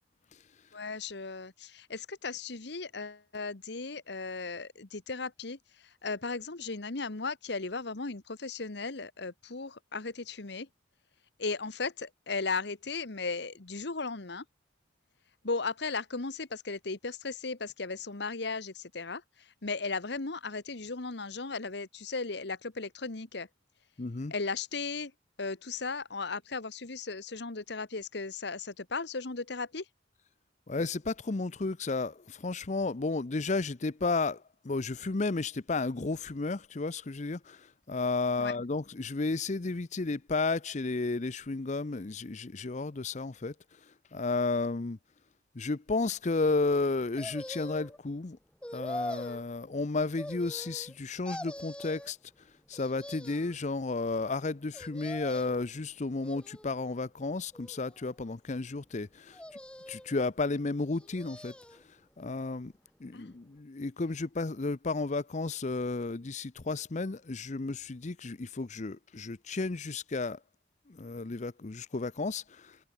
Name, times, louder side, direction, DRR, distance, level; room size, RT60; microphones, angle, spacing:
voice 1, 0.7-10.7 11.4-14.4 15.4-23.5 24.3-25.1 25.4-29.8 38.4-38.5 63.1-63.3, left 4 dB, 65° left, 1.3 m, -36 dB
voice 2, 24.0-24.3 30.7-43.5 43.8-45.0 45.5-48.4 48.7-52.2 52.7-59.4 59.9-61.8 62.2-62.7 63.0-70.4 70.9-72.8, left 3 dB, 40° left, 0.7 m, -33 dB
sound 1, 47.2-48.0 48.6-49.4 50.2-50.9 51.2-52.1 52.7-53.6 54.7-55.7 56.2-56.9 57.5-58.3 59.3-60.1 60.9-61.8 62.2-62.3, left 1 dB, 5° left, 0.9 m, -43 dB
head